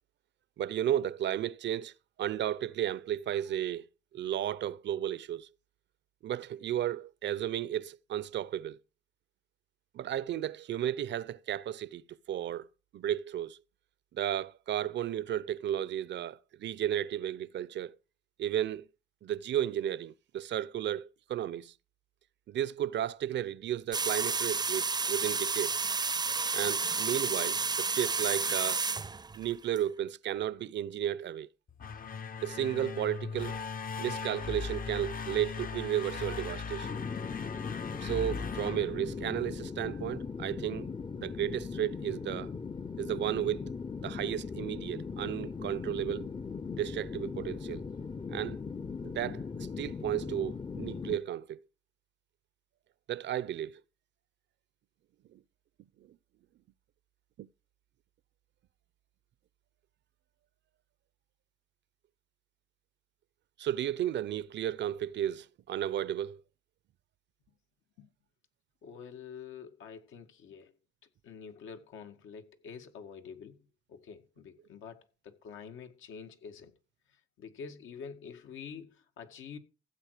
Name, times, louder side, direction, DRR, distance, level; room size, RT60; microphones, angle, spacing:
voice 1, 0.6-1.9 2.2-3.8 4.1-5.5 6.2-8.8 9.9-12.7 12.9-13.6 14.1-18.0 18.4-18.9 19.2-21.7 22.5-25.9 26.5-28.8 29.3-31.5 32.4-33.6 34.0-37.0 38.0-40.9 41.1-42.5 43.0-43.7 44.0-46.3 46.8-47.8 48.3-48.6 49.0-51.6 53.1-53.8 55.3-55.4 57.4-57.5 63.6-66.4, right 11 dB, 65° right, 0.7 m, -33 dB
sound 1, 23.9-29.8, right 4 dB, 20° right, 0.6 m, -31 dB
sound 2, 31.7-39.7, left 5 dB, 45° left, 1.0 m, -39 dB
sound 3, 36.8-51.2, left 5 dB, 25° left, 0.7 m, -39 dB
voice 2, 68.8-70.7 71.2-76.7 77.4-79.6, left 6 dB, 80° left, 2.1 m, -47 dB
15.0 x 8.1 x 5.0 m
cardioid pair, 90°, 20 cm